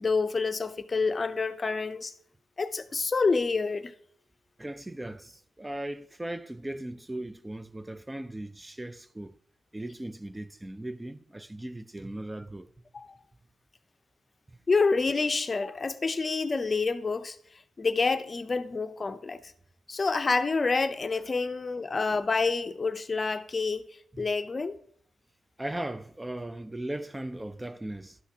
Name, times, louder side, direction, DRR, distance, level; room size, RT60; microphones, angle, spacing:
voice 1, 0.0-2.1 2.6-3.9 12.9-13.1 14.7-17.4 17.8-19.4 19.9-23.8 24.2-24.8, left 4 dB, 40° left, 0.5 m, -28 dB
voice 2, 4.6-9.3 9.7-12.7 24.1-24.3 25.6-28.2, right 1 dB, 15° right, 0.4 m, -38 dB
12.0 x 5.7 x 2.8 m
cardioid pair, 60°, 0 cm